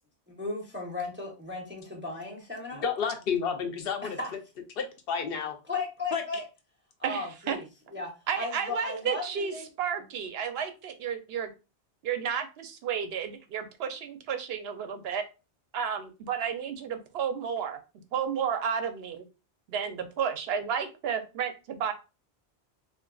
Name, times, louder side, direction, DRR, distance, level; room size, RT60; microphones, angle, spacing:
voice 1, 0.3-2.8 4.0-4.3 5.7-6.4 7.0-7.6 7.9-8.1 8.4-9.7, left 3 dB, 15° right, 0 dB, 0.6 m, -35 dB
voice 2, 2.7-4.2 4.8-5.6 6.1-6.2, left 6 dB, 65° left, 5 dB, 0.8 m, -30 dB
voice 3, 7.0-7.6 8.3-11.5 12.0-15.2 15.7-17.8 18.1-19.3 19.7-21.9, right 7 dB, 70° right, 7 dB, 0.8 m, -32 dB
3.8 x 2.5 x 2.2 m, 0.29 s
omnidirectional pair, 1.1 m